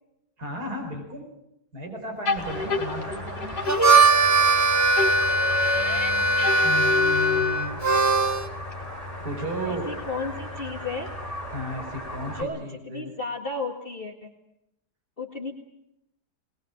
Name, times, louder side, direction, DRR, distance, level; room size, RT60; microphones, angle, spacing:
voice 1, 0.4-1.2 1.7-3.5 6.6-7.8 9.2-9.9 11.5-13.1, equal, 70° right, 1 dB, 5.1 m, -34 dB
sound 1, 2.2-4.6 5.0-7.8, left 5 dB, 85° left, 2.5 m, -29 dB
sound 2, 2.4-12.4, left 1 dB, 10° left, 4.7 m, -36 dB
Harmonica, 3.5-8.5, right 3 dB, 20° right, 0.4 m, -20 dB
voice 2, 5.7-6.7 9.6-11.1 12.2-14.3 15.2-15.5, left 3 dB, 35° left, 2 dB, 2.2 m, -34 dB
22.0 x 20.5 x 8.8 m, 0.82 s
omnidirectional pair, 1.7 m